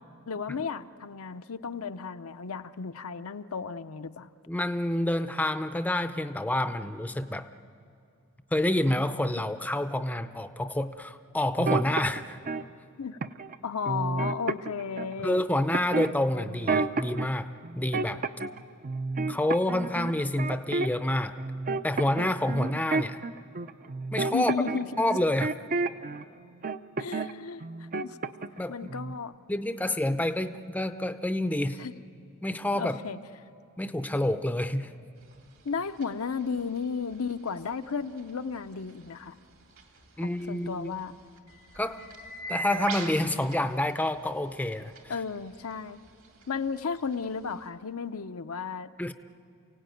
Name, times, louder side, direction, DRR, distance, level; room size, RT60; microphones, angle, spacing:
voice 1, 0.3-4.3 13.0-13.2 13.6-15.4 22.7-22.8 24.3-24.9 27.0-28.2 28.7-29.3 31.8-31.9 32.7-33.2 35.6-39.4 40.2-41.1 45.1-46.0 46.5-48.9, left 5 dB, 70° left, 9 dB, 0.7 m, -34 dB
voice 2, 4.5-7.5 8.5-12.4 15.2-18.2 19.3-21.3 21.8-23.2 24.1-24.5 25.0-25.5 28.6-28.8 29.5-31.8 32.4-33.0 33.8-34.9 40.2-40.9 41.8-42.0 42.5-44.9 49.0-49.1, left 1 dB, 5° left, 9 dB, 0.6 m, -28 dB
sound 1, 11.6-12.6 13.2-13.5 13.8-15.1 15.7-17.3 17.6-18.6 18.8-21.1 21.4-26.2 26.6-27.3 27.6-28.6 28.9-29.1, right 3 dB, 40° right, 0.5 m, -30 dB
sound 2, 35.2-47.7, right 2 dB, 65° right, 2.7 m, -44 dB
29.0 x 17.0 x 9.2 m, 2.4 s
head